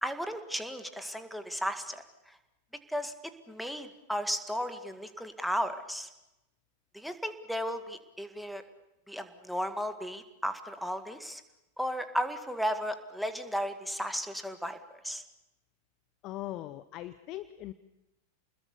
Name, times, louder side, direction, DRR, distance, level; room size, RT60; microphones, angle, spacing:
voice 1, 0.0-2.0 2.9-6.1 6.9-8.6 9.1-11.4 11.8-14.8 15.0-15.2, equal, ahead, 9 dB, 2.0 m, -34 dB
voice 2, 16.2-17.7, left 15 dB, 40° left, 14 dB, 0.8 m, -40 dB
29.5 x 20.5 x 7.1 m, 0.92 s
figure-of-eight pair, 90°, 0 cm